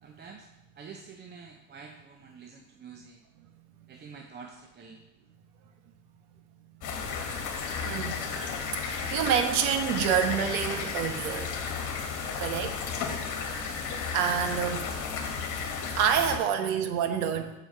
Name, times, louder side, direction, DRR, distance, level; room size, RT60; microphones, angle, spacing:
voice 1, 0.0-0.5 0.8-3.2 3.9-5.0, right 5 dB, 25° right, 3 dB, 0.7 m, -47 dB
sound 1, 6.8-16.4, left 5 dB, 45° left, 1.6 m, -33 dB
voice 2, 7.8-8.3 8.7-11.5 12.4-12.8 14.1-14.8 15.9-17.5, right 8 dB, 80° right, 7 dB, 1.1 m, -27 dB
6.7 x 4.8 x 6.5 m, 0.98 s
supercardioid pair, 110°, 43 cm